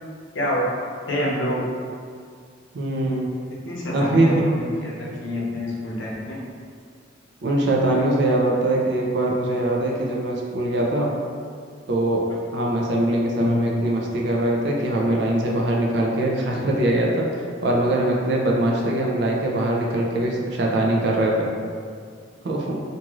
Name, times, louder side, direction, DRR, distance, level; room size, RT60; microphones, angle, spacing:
voice 1, 1.1-1.6 3.6-6.4 13.4-13.7, left 1 dB, 85° left, -5 dB, 0.7 m, -27 dB
voice 2, 2.7-3.3 3.9-4.5 7.4-11.1 11.9-12.2 12.5-17.3 17.6-21.5 22.4-22.8, right 1 dB, 65° right, -2 dB, 0.5 m, -22 dB
2.6 x 2.4 x 2.9 m, 2.1 s
head